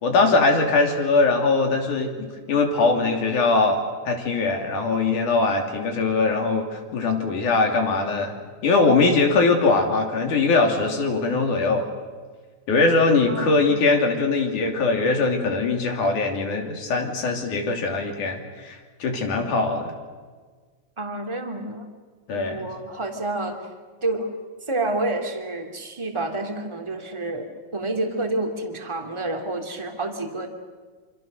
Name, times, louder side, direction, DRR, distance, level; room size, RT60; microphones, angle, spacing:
voice 1, 0.0-2.1 2.5-8.3 8.6-11.9 12.7-19.9 22.3-22.7, left 3 dB, 85° left, 2 dB, 4.5 m, -21 dB
voice 2, 13.3-13.6 21.0-21.9 22.3-23.7 24.0-24.3 24.7-30.5, right 2 dB, 10° right, 3 dB, 2.3 m, -29 dB
27.5 x 26.5 x 6.7 m, 1.5 s
omnidirectional pair, 3.4 m